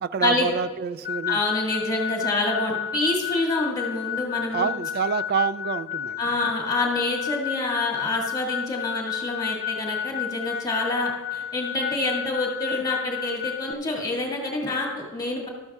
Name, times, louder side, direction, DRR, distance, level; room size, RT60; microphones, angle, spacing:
voice 1, 0.0-1.4 4.5-6.2, right 6 dB, 50° right, 13 dB, 0.3 m, -27 dB
sound 1, 1.0-13.7, left 10 dB, 40° left, 0.4 m, -31 dB
voice 2, 1.3-4.7 6.2-15.5, left 2 dB, 20° left, -1 dB, 1.9 m, -27 dB
13.0 x 11.5 x 2.4 m, 1.4 s
head